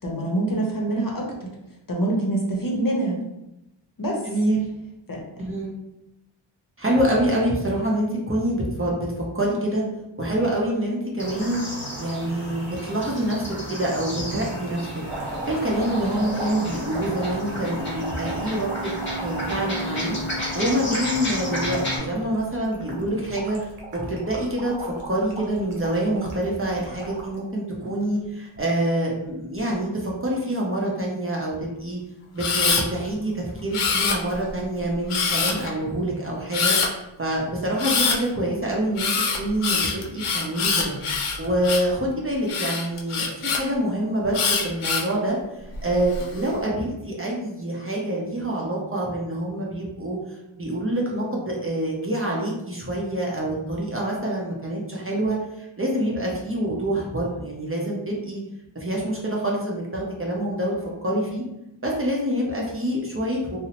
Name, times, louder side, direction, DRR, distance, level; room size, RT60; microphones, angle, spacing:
voice 1, 0.0-1.5 1.9-3.2 4.0-4.2 5.1-5.2, right 1 dB, 45° left, -1 dB, 0.7 m, -25 dB
voice 2, 4.2-4.7 5.4-5.7 6.8-9.8 10.2-11.6 12.0-14.9 15.5-18.9 19.2-20.2 20.5-23.6 23.9-32.0 32.3-36.8 37.2-39.1 39.4-40.9 41.4-50.2 50.6-58.4 58.7-60.7 61.0-61.4 61.8-63.6, right 1 dB, 25° right, -3 dB, 0.6 m, -26 dB
sound 1, 11.2-22.0, equal, 25° left, 1.1 m, -31 dB
sound 2, 15.1-27.4 27.9-28.6 29.6-29.8, right 2 dB, 90° right, 0.7 m, -38 dB
Camera, 32.4-32.8 33.7-34.5 35.1-35.7 36.5-36.9 37.8-38.2 39.0-41.9 42.5-43.6 44.3-45.1 45.7-46.2, left 5 dB, 85° left, 0.6 m, -24 dB
2.7 x 2.0 x 2.9 m, 0.90 s
wide cardioid pair, 60°, 49 cm